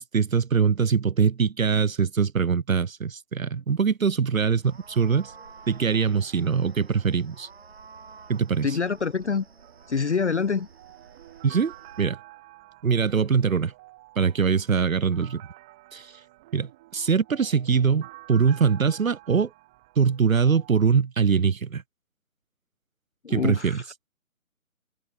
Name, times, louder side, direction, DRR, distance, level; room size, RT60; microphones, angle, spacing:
voice 1, 0.0-5.3 5.7-7.5 8.3-8.8 11.4-12.2 12.8-13.7 14.2-15.4 15.9-16.1 16.5-19.5 20.0-21.8 23.3-23.8, right 6 dB, 70° right, 0.8 m, -23 dB
sound 1, 4.6-12.1, right 5 dB, 45° right, 3.3 m, -50 dB
voice 2, 8.6-9.4 9.9-10.7 23.2-23.8, left 5 dB, 55° left, 0.7 m, -26 dB
sound 2, 9.6-20.9, right 19 dB, 5° right, 1.1 m, -50 dB
figure-of-eight pair, 155°, 43 cm